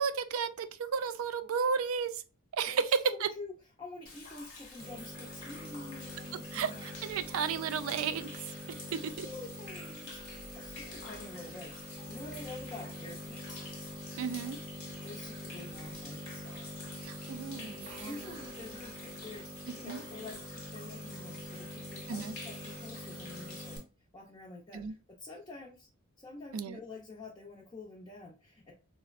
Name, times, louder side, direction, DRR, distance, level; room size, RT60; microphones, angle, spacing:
voice 1, 0.0-2.2 2.5-3.3 6.5-8.3 8.7-9.3 14.2-14.6 17.0-18.3 19.7-20.0 22.1-22.3 24.7-24.9 26.5-26.8, right 6 dB, 75° right, 0.3 m, -33 dB
voice 2, 3.1-3.5 3.8-6.8 9.2-13.6 15.0-16.4 17.2-17.3 18.0-23.8 24.1-25.9 26.2-28.7, left 2 dB, 20° left, 0.5 m, -48 dB
Human voice / Rain / Stream, 4.1-23.8, left 3 dB, 65° left, 0.9 m, -49 dB
sound 1, 4.8-23.8, equal, 25° right, 0.7 m, -45 dB
4.1 x 2.0 x 2.4 m
head